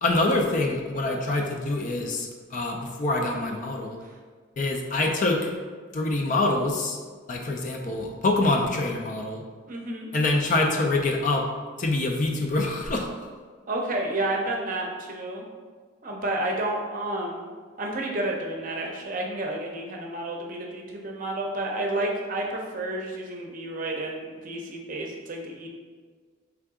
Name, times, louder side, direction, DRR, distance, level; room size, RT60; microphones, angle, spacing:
voice 1, 0.0-4.0 4.6-5.5 5.9-7.0 7.3-9.4 10.1-11.4 11.8-13.1, left 2 dB, 40° left, 2 dB, 0.4 m, -25 dB
voice 2, 9.7-10.1 13.7-15.4 16.0-17.5 17.8-25.7, right 1 dB, 40° right, 0 dB, 0.6 m, -30 dB
3.8 x 3.5 x 3.6 m, 1.5 s
head